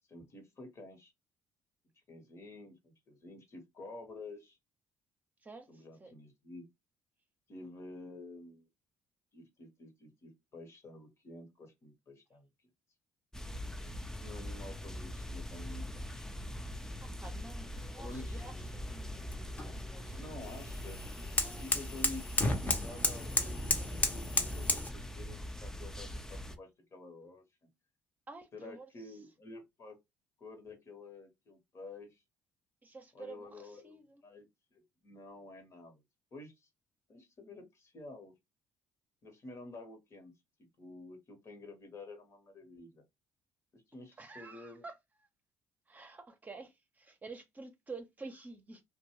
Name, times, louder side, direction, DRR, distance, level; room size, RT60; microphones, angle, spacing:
voice 1, 0.1-1.1 2.1-4.6 5.7-6.6 7.5-8.7 9.3-12.5 14.2-16.3 17.9-18.4 20.1-21.3 21.6-23.7 24.1-27.4 28.5-30.0 30.4-32.2 33.1-36.0 36.3-36.7 37.1-38.3 39.2-40.3 40.8-43.0 43.7-44.8, left 2 dB, 45° left, 1.2 m, -50 dB
voice 2, 5.4-6.1 17.0-19.2 19.7-20.2 21.4-21.8 28.3-28.9 32.8-34.2 44.2-44.9 45.9-48.8, right 3 dB, 25° right, 0.8 m, -50 dB
sound 1, 13.3-26.6, left 1 dB, 10° left, 0.5 m, -42 dB
sound 2, 18.1-24.9, left 2 dB, 25° left, 0.9 m, -34 dB
2.5 x 2.2 x 3.0 m
supercardioid pair, 70°, 7 cm